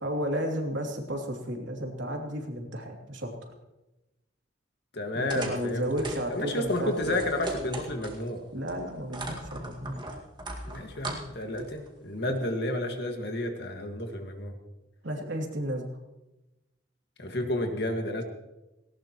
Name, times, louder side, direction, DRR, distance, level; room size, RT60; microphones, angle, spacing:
voice 1, 0.0-3.5 5.1-7.2 8.5-10.0 12.3-12.4 15.0-15.9, equal, 75° right, 1 dB, 2.9 m, -33 dB
voice 2, 4.9-5.9 6.3-8.4 10.6-14.5 17.2-18.2, left 1 dB, 60° left, 4 dB, 2.0 m, -31 dB
sound 1, 5.3-8.3 8.7-11.9, right 1 dB, 25° right, 2.0 m, -39 dB
18.5 x 18.0 x 3.1 m, 0.99 s
head